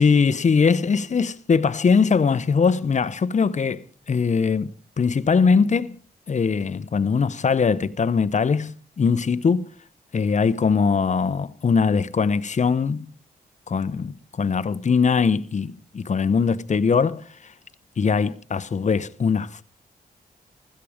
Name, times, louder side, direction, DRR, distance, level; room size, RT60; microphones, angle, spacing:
voice 1, 0.0-6.0 6.3-9.7 10.1-13.1 13.7-17.3 18.0-19.6, left 5 dB, 45° left, 0.9 m, -21 dB
16.0 x 13.5 x 5.0 m
cardioid pair, 65°, 17 cm